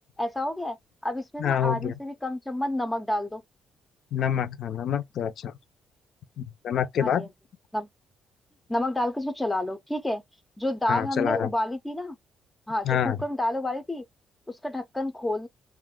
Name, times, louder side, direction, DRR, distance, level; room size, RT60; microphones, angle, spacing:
voice 1, 0.2-0.8 1.0-3.4 7.0-7.3 7.7-7.9 8.7-10.2 10.6-12.2 12.7-14.0 14.5-15.5, left 1 dB, 10° left, 0.5 m, -29 dB
voice 2, 1.4-1.9 4.1-5.5 6.4-7.3 10.9-11.5 12.8-13.2, left 9 dB, 65° left, 0.5 m, -27 dB
2.3 x 2.1 x 3.5 m
cardioid pair, 90°, 0 cm